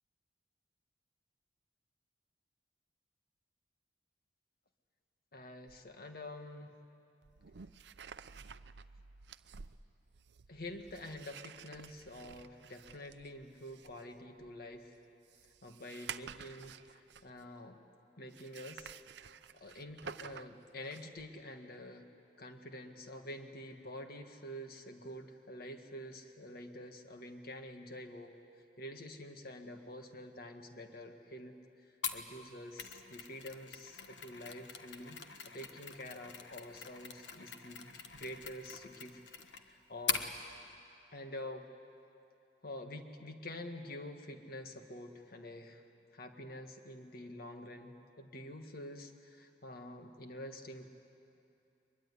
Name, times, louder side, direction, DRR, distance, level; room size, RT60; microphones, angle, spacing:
voice 1, 5.3-6.7 10.5-14.9 15.6-17.8 18.2-18.9 19.5-22.0 22.4-28.3 28.8-31.6 32.1-35.2 35.5-39.2 39.6-40.2 41.1-41.7 42.6-45.8 46.1-50.9, left 1 dB, 60° left, 5 dB, 1.8 m, -47 dB
sound 1, 5.7-5.8 7.2-17.5 18.3-21.3, right 7 dB, 70° right, 0.6 m, -51 dB
Mechanisms, 32.0-40.3, left 6 dB, 85° left, 1.4 m, -43 dB
22.5 x 22.5 x 9.8 m, 2.7 s
head